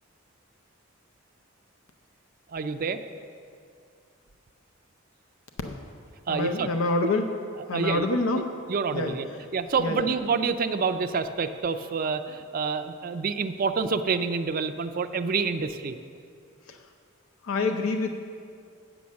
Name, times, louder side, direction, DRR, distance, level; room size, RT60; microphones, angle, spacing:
voice 1, 2.5-3.0 6.3-6.7 7.0-7.1 7.7-8.1 8.7-9.3 9.5-16.0, right 5 dB, 40° right, 9 dB, 0.4 m, -27 dB
voice 2, 6.3-7.3 7.7-8.5 8.9-9.2 9.8-10.1 16.7-16.8 17.4-18.1, left 2 dB, 75° left, 4 dB, 0.6 m, -26 dB
8.6 x 7.0 x 6.3 m, 2.3 s
head